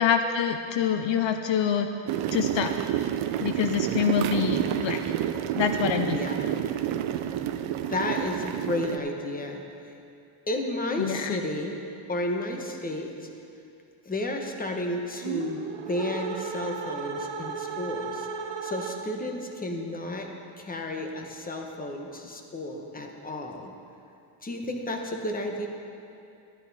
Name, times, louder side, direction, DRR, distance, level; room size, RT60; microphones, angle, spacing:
voice 1, 0.0-1.9 2.3-2.7 3.4-5.0 5.6-6.2 11.0-11.4, left 8 dB, 65° left, 7 dB, 0.6 m, -26 dB
sound 1, 2.1-9.0, right 11 dB, 75° right, 0.7 m, -29 dB
voice 2, 7.9-9.6 10.5-11.8 12.1-13.3 14.0-15.6 15.9-18.3 18.6-20.3 20.6-23.7 24.4-25.7, left 1 dB, 15° left, 3 dB, 1.0 m, -32 dB
sound 2, 15.1-19.3, right 5 dB, 60° right, 1.1 m, -35 dB
12.5 x 11.5 x 4.1 m, 2.6 s
cardioid pair, 145°, 49 cm